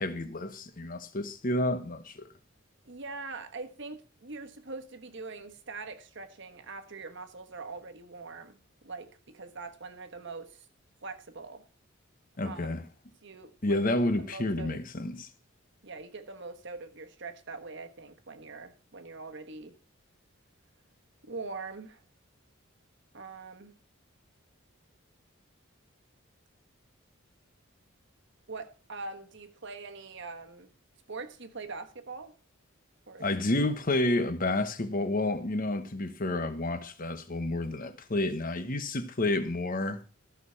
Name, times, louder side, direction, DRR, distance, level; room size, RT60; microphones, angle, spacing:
voice 1, 0.0-2.3 12.4-12.8 13.6-15.3 33.2-40.0, left 2 dB, 40° left, 1.1 m, -30 dB
voice 2, 2.9-8.6 8.8-10.7 11.0-11.7 12.4-12.8 13.2-13.8 14.2-14.8 15.8-19.7 21.2-22.0 23.1-23.7 28.5-30.7 31.1-32.3 33.1-33.2, right 3 dB, 60° right, 1.3 m, -43 dB
14.0 x 6.5 x 5.6 m
head